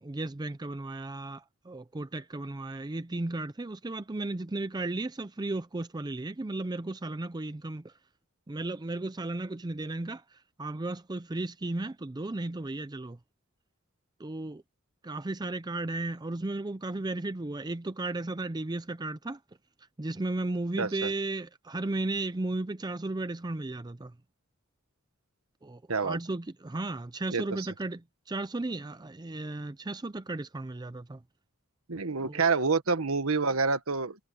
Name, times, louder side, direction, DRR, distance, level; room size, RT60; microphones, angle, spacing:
voice 1, 0.0-7.9 8.5-13.2 14.2-14.6 15.0-19.4 20.0-24.1 25.6-28.0 28.3-31.2 32.2-32.4, right 2 dB, 20° right, 0.5 m, -35 dB
voice 2, 20.8-21.1 25.9-26.2 27.3-27.7 31.9-34.3, right 4 dB, 70° right, 1.4 m, -28 dB
head